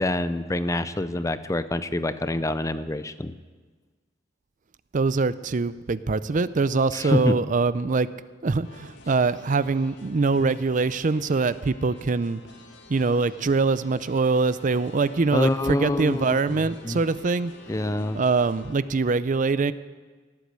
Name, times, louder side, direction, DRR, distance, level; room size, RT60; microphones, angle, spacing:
voice 1, 0.0-3.3 6.9-7.4 15.3-16.4 16.8-17.0 17.7-18.2, left 1 dB, 15° left, 12 dB, 0.5 m, -26 dB
voice 2, 4.9-8.1 8.4-12.4 12.9-17.5 18.1-19.7, right 4 dB, 45° right, 16 dB, 0.5 m, -23 dB
sound 1, 8.6-18.7, left 3 dB, 70° left, 1.9 m, -49 dB
18.0 x 8.3 x 8.1 m, 1.4 s
head